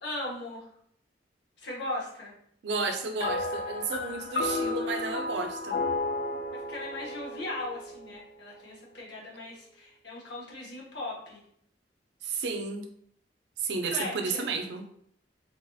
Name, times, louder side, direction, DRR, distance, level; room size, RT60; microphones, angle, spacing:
voice 1, 0.0-0.7 1.6-2.3 6.5-11.4 13.9-14.4, left 2 dB, 85° left, -5 dB, 1.2 m, -38 dB
voice 2, 2.6-5.8 12.2-12.9 13.6-14.8, right 4 dB, 75° right, 4 dB, 0.5 m, -32 dB
sound 1, 3.2-8.7, left 2 dB, 55° left, 0.3 m, -33 dB
3.5 x 2.3 x 2.6 m, 0.69 s
head